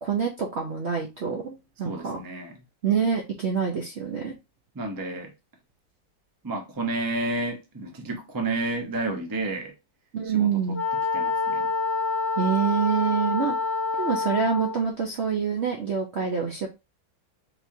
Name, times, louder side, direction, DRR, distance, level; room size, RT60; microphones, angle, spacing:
voice 1, 0.0-2.2 2.8-4.3 10.1-10.8 12.4-13.6 14.0-16.7, right 7 dB, 60° right, 0.7 m, -26 dB
voice 2, 1.8-2.6 4.7-5.3 6.4-9.7 10.2-10.8 11.1-11.7, right 2 dB, 20° right, 0.5 m, -31 dB
Wind instrument woodwind instrument, 10.7-14.9, left 4 dB, 35° left, 1.7 m, -27 dB
4.3 x 3.4 x 2.7 m
omnidirectional pair, 2.0 m